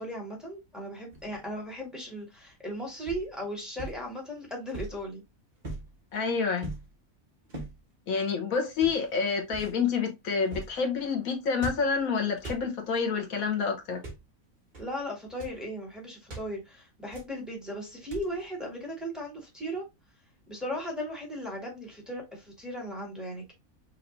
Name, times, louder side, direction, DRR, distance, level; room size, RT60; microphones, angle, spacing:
voice 1, 0.0-5.2 14.8-19.8 20.5-23.5, equal, ahead, 1.8 m, -37 dB
Cinematic - Punches - Hits, 1.1-1.5 3.1-3.3 3.8-4.0 4.7-5.1 5.6-5.9 6.6-6.9 7.5-7.8 8.7-9.1 9.5-9.8 10.4-10.8 11.6-12.0 12.4-12.7 13.9-14.3 14.7-14.9 15.2-15.6 16.3-16.5 17.1-17.4 18.1-18.4, right 2 dB, 35° right, 1.4 m, -41 dB
voice 2, 6.1-6.7 8.1-14.0, left 5 dB, 75° left, 1.5 m, -28 dB
5.7 x 2.8 x 2.6 m
omnidirectional pair, 1.5 m